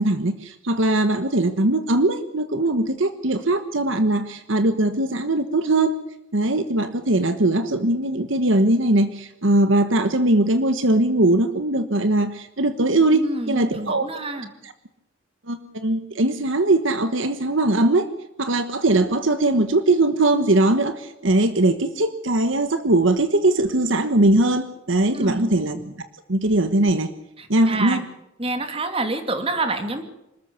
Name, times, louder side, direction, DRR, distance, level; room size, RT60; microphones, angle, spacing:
voice 1, 0.0-6.0 6.3-14.1 14.3-14.7 15.5-18.1 18.4-25.9 26.3-27.1 27.5-28.0, right 2 dB, 65° right, 10 dB, 1.3 m, -20 dB
voice 2, 13.1-14.5 25.1-25.5 27.4-28.0 28.4-30.0, right 2 dB, 25° right, 7 dB, 2.5 m, -27 dB
26.0 x 13.5 x 8.3 m, 0.90 s
head